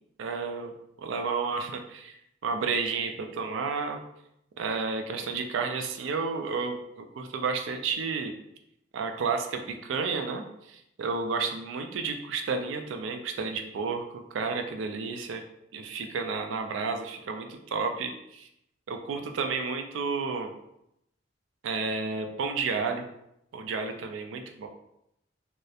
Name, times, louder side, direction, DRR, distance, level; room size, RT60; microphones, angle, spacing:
voice 1, 0.2-0.7 1.0-2.2 2.4-4.0 4.6-8.3 8.9-15.4 15.7-18.5 18.9-20.5 21.6-23.1 23.5-24.7, right 4 dB, 80° right, 5 dB, 0.3 m, -31 dB
2.8 x 2.0 x 2.3 m, 0.80 s
head